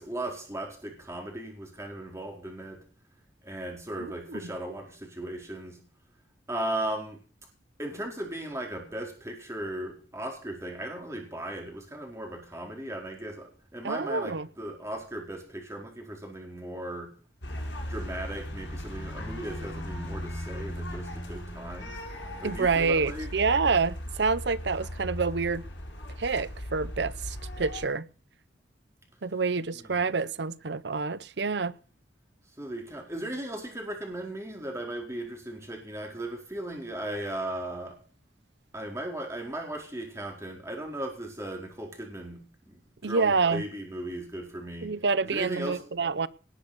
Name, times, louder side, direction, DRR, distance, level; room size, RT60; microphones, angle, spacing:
voice 1, 0.0-2.8 3.4-5.8 6.5-7.2 7.8-17.1 17.9-22.0 22.4-23.3 29.7-30.1 32.6-38.0 38.7-45.0 45.2-45.9, right 1 dB, 15° right, 4.4 m, -37 dB
voice 2, 13.8-14.5 22.4-25.6 26.2-28.1 29.2-31.7 43.0-43.6 44.8-46.3, right 4 dB, 65° right, 0.7 m, -27 dB
sound 1, 17.4-27.9, left 1 dB, 85° left, 6.5 m, -38 dB
19.0 x 8.3 x 6.7 m
head